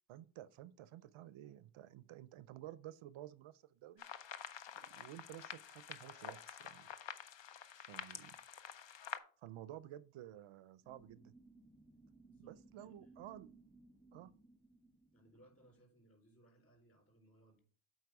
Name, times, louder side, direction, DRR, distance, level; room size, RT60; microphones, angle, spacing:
voice 1, 0.1-4.1 4.7-6.9 7.8-8.3 9.4-11.3 12.4-13.5 14.1-14.3, right 13 dB, 80° right, 0.6 m, -53 dB
sound 1, 4.0-9.2, left 8 dB, 65° left, 0.7 m, -49 dB
sound 2, 10.8-15.8, right 2 dB, 10° left, 1.3 m, -63 dB
voice 2, 12.2-13.4 14.1-14.3 15.1-17.6, right 1 dB, 25° left, 3.9 m, -68 dB
8.1 x 4.6 x 4.7 m
cardioid pair, 110°, 49 cm